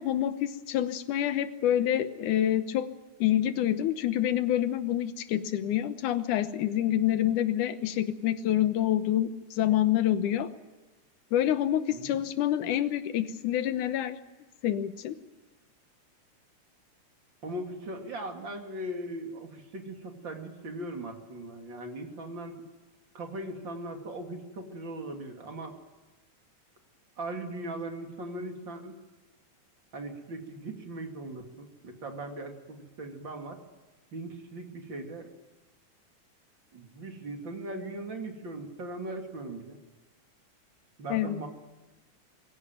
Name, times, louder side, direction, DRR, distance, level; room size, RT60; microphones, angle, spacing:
voice 1, 0.0-2.9 3.2-10.5 11.3-14.2 14.6-15.2 41.1-41.4, left 11 dB, 80° left, 11 dB, 2.5 m, -27 dB
voice 2, 11.9-12.2 17.4-22.6 23.1-25.8 27.2-29.0 29.9-33.6 34.1-35.3 36.7-39.8 41.0-41.5, right 1 dB, 40° right, 3 dB, 3.1 m, -39 dB
23.0 x 16.5 x 9.2 m, 1.2 s
omnidirectional pair, 3.6 m